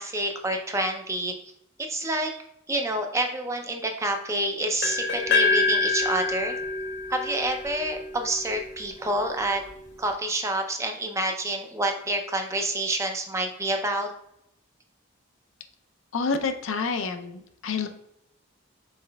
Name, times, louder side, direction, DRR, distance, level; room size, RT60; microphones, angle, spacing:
voice 1, 0.0-1.4 1.8-2.3 2.7-6.6 7.1-9.6 10.0-14.1, right 1 dB, 15° right, 4 dB, 0.4 m, -28 dB
sound 1, 4.8-8.7, left 4 dB, 55° left, 0.9 m, -26 dB
voice 2, 16.1-17.9, left 4 dB, 70° left, 7 dB, 0.5 m, -28 dB
5.6 x 4.2 x 2.2 m, 0.78 s
head